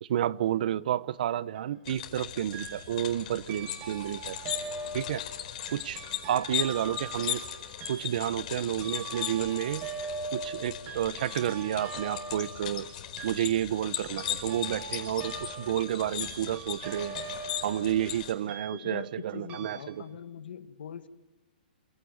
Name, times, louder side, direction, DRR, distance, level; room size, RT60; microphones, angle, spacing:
voice 1, 0.0-4.4 4.9-5.2 5.7-6.0 6.3-7.4 7.9-9.8 10.3-12.9 13.2-17.1 17.6-20.0, right 11 dB, 55° right, 19 dB, 0.8 m, -30 dB
sound 1, 1.5-1.8 2.5-3.1 3.5-19.2 19.5-19.8, right 4 dB, 25° right, 5.6 m, -42 dB
sound 2, 1.9-18.3, left 11 dB, 45° left, 4.8 m, -38 dB
voice 2, 18.7-21.1, left 8 dB, 70° left, 10 dB, 1.7 m, -42 dB
27.0 x 17.0 x 9.3 m, 1.1 s
hypercardioid pair, 160°, 5 cm